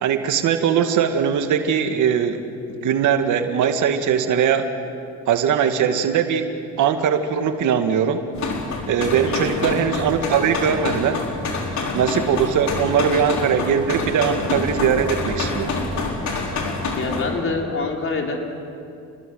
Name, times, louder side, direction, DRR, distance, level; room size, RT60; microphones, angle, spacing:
voice 1, 0.0-2.4 2.7-4.7 5.3-6.5 6.8-8.2 8.9-11.2 11.9-15.7, right 8 dB, 80° right, 7 dB, 2.0 m, -20 dB
sound 1, 8.3-17.3, left 3 dB, 65° left, 4.5 m, -27 dB
voice 2, 9.2-9.6 17.0-18.4, left 4 dB, 45° left, 1 dB, 4.6 m, -26 dB
29.5 x 21.0 x 7.9 m, 2.5 s
cardioid pair, 90°, 30 cm